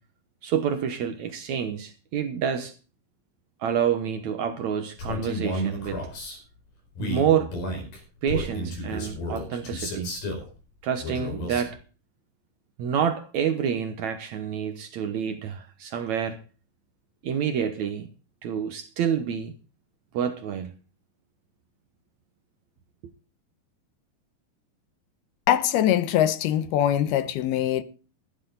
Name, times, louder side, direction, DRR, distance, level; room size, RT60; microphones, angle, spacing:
voice 1, 0.4-2.8 3.6-6.1 7.0-7.5 8.2-10.1 10.8-11.8 12.8-16.4 17.2-18.1 18.4-19.5 20.1-20.7, right 8 dB, 70° right, 1.7 m, -28 dB
Male speech man speaking, 5.0-6.4 6.9-10.5 11.0-11.7, left 1 dB, 65° left, 6.8 m, -32 dB
voice 2, 25.5-27.8, left 11 dB, 80° left, 2.8 m, -22 dB
15.0 x 12.5 x 4.0 m
omnidirectional pair, 4.6 m